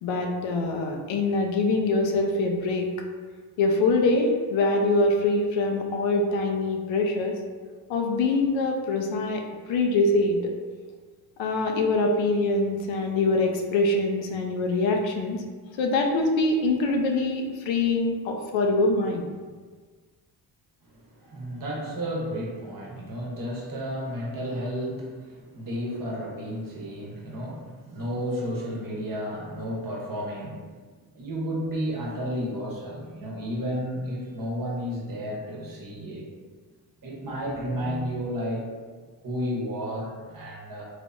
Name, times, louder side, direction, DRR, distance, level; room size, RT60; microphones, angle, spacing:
voice 1, 0.0-2.9 3.6-7.4 7.9-9.4 9.7-10.4 11.4-15.4 15.8-19.2, left 2 dB, 70° left, 2 dB, 0.6 m, -24 dB
voice 2, 20.9-30.8 31.1-36.3 37.0-38.7 39.2-40.9, equal, 45° right, -3 dB, 0.9 m, -32 dB
3.2 x 2.0 x 2.5 m, 1.5 s
supercardioid pair, 55°, 46 cm